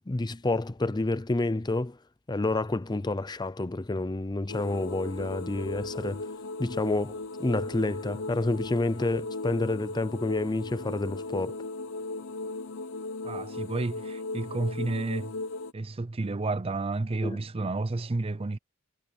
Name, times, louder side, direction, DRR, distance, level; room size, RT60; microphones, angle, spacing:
voice 1, 0.1-2.0 2.3-6.2 6.6-11.6 17.2-17.4, left 2 dB, 20° left, 0.6 m, -29 dB
sound 1, 4.5-15.7, left 3 dB, 65° left, 0.7 m, -37 dB
voice 2, 13.2-15.3 15.7-18.6, right 2 dB, 30° right, 0.5 m, -31 dB
head